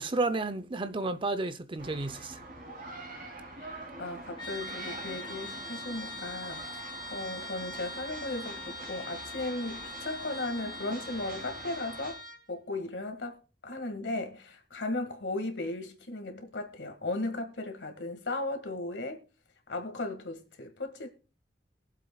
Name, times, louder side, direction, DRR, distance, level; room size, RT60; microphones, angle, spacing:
voice 1, 0.0-2.4, right 3 dB, 30° right, 0.6 m, -31 dB
sound 1, 1.8-12.1, right 2 dB, 50° right, 3.1 m, -45 dB
voice 2, 3.6-12.2 12.5-19.2 19.7-21.1, left 2 dB, 90° left, 1.9 m, -36 dB
Trumpet, 4.4-12.4, left 1 dB, 30° left, 2.7 m, -42 dB
23.0 x 7.6 x 2.3 m
head